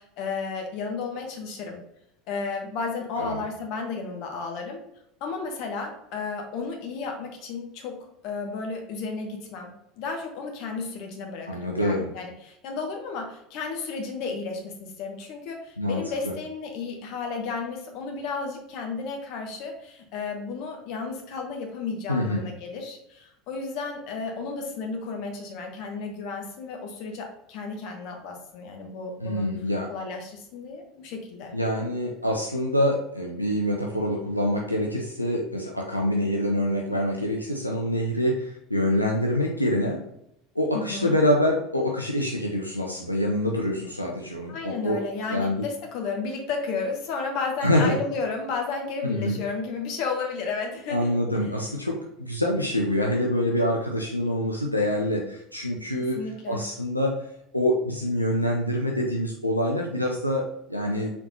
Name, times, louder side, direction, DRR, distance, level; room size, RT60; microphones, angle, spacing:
voice 1, 0.0-1.8 2.3-4.8 5.2-8.0 8.2-29.5 29.9-31.5 40.7-41.2 44.5-51.2 56.1-56.6, left 4 dB, 50° left, 2 dB, 1.0 m, -33 dB
voice 2, 11.5-12.1 15.8-16.3 22.1-22.4 29.2-29.9 31.5-40.0 40.6-45.0 45.3-45.6 47.6-48.0 49.0-49.4 50.9-56.2 56.5-57.2 57.5-61.1, left 1 dB, 90° left, -1 dB, 0.5 m, -26 dB
4.2 x 3.9 x 2.7 m, 0.79 s
figure-of-eight pair, 75°, 0 cm